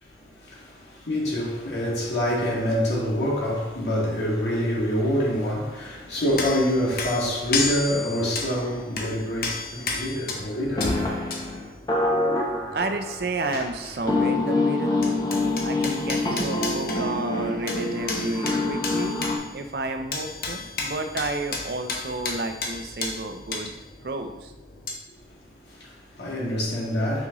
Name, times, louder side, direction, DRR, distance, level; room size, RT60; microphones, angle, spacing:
voice 1, 0.0-11.1 25.3-27.3, equal, 85° left, 2.1 m, -26 dB
sound 1, 6.1-14.5 14.8-25.0, left 4 dB, 55° left, 0.9 m, -34 dB
sound 2, 10.3-10.4 10.8-13.4 14.1-19.4, left 2 dB, 20° left, 0.8 m, -26 dB
voice 2, 12.7-15.0 15.6-23.7 24.0-24.5, right 2 dB, 65° right, 0.6 m, -31 dB
6.1 x 5.3 x 3.0 m
head